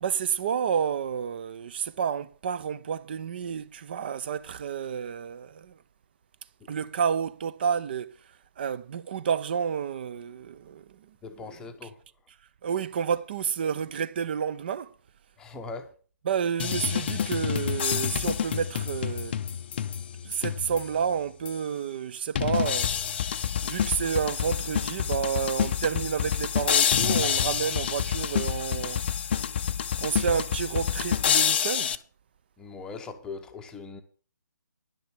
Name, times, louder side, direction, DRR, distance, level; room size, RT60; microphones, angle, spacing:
voice 1, 0.0-5.8 6.7-8.1 8.6-11.7 12.6-14.9 16.2-19.4 20.2-22.9 23.6-29.0 30.0-32.0, right 7 dB, 30° right, 0.5 m, -30 dB
voice 2, 11.2-12.0 15.4-15.9 32.6-34.0, left 4 dB, 5° left, 0.8 m, -40 dB
sound 1, 16.6-21.0 21.5-21.6 22.4-32.0, left 8 dB, 35° left, 0.5 m, -28 dB
10.5 x 6.6 x 7.0 m
figure-of-eight pair, 145°, 10 cm